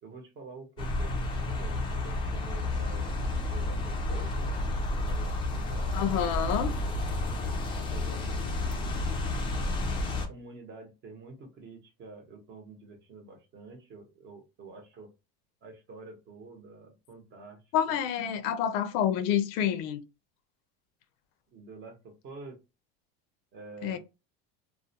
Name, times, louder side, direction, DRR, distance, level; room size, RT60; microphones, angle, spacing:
voice 1, 0.0-3.2 3.5-6.9 7.8-8.5 8.8-9.5 10.1-15.1 15.6-17.6 18.6-19.0 21.5-22.6 23.5-24.0, right 3 dB, 35° right, 0.8 m, -48 dB
sound 1, 0.8-10.3, left 2 dB, 15° left, 0.3 m, -31 dB
voice 2, 5.9-6.7 17.7-20.0 23.8-24.0, left 9 dB, 75° left, 0.5 m, -28 dB
2.3 x 2.1 x 2.7 m
cardioid pair, 150°, 30 cm